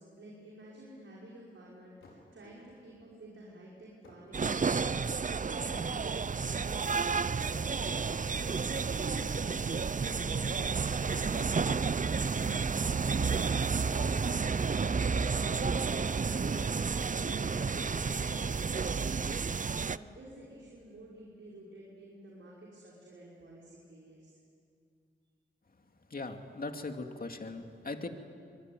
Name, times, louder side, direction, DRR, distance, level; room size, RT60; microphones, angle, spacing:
voice 1, 0.0-4.8 5.2-7.9 8.2-11.9 12.3-16.8 17.1-24.4, right 1 dB, 75° right, -5 dB, 5.7 m, -51 dB
sound 1, 2.0-3.0 4.0-4.4 4.7-5.3 6.3-6.4 7.5-8.8 10.8-12.6 13.3-13.7 14.1-14.2 15.4-16.8, left 2 dB, 85° left, 5.3 m, -57 dB
sound 2, 4.3-20.0, right 5 dB, 40° right, 0.7 m, -31 dB
sound 3, 11.4-16.6, equal, 5° left, 7.9 m, -48 dB
voice 2, 26.1-28.1, left 3 dB, 45° left, 5 dB, 2.6 m, -39 dB
25.5 x 22.5 x 9.5 m, 2.3 s
cardioid pair, 45°, 20 cm